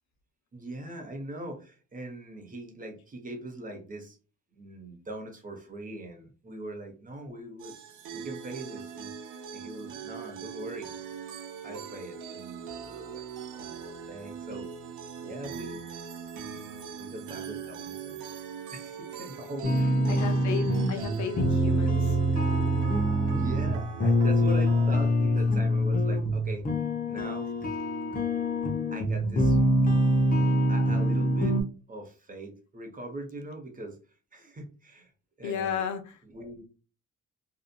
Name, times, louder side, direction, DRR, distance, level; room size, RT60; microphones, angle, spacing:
voice 1, 0.5-4.2 4.5-7.7 8.1-10.9 11.6-14.7 15.2-15.8 17.0-18.2 18.7-20.5 23.3-26.7 27.0-27.5 28.9-29.6 30.7-31.6 31.9-34.0 34.3-35.1 35.4-35.8 36.2-36.6, right 1 dB, 25° right, 0.9 m, -41 dB
sound 1, 7.6-24.9, right 7 dB, 85° right, 0.6 m, -41 dB
sound 2, 19.6-31.6, equal, 30° left, 0.7 m, -25 dB
voice 2, 20.1-22.2 35.4-36.2, left 6 dB, 70° left, 0.6 m, -33 dB
2.8 x 2.3 x 2.2 m
cardioid pair, 90°, 30 cm